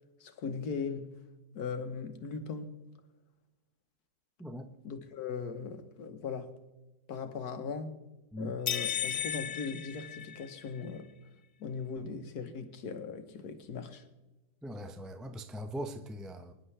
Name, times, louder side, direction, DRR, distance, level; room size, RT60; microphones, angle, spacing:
voice 1, 0.2-1.2 1.5-2.8 4.8-6.5 7.1-8.0 8.4-11.1 11.6-14.0, left 5 dB, 70° left, 1.6 m, -39 dB
sound 1, 8.7-10.8, left 9 dB, 85° left, 0.5 m, -35 dB
voice 2, 14.6-16.5, equal, ahead, 0.4 m, -40 dB
24.5 x 10.5 x 3.3 m
omnidirectional pair, 1.7 m